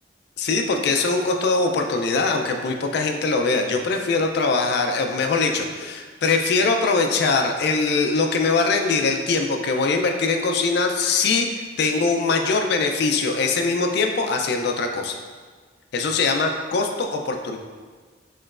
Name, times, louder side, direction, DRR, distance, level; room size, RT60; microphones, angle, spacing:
voice 1, 0.4-11.5 11.8-15.1 15.9-17.6, left 4 dB, 65° left, 4 dB, 0.4 m, -22 dB
4.4 x 3.0 x 2.4 m, 1.5 s
head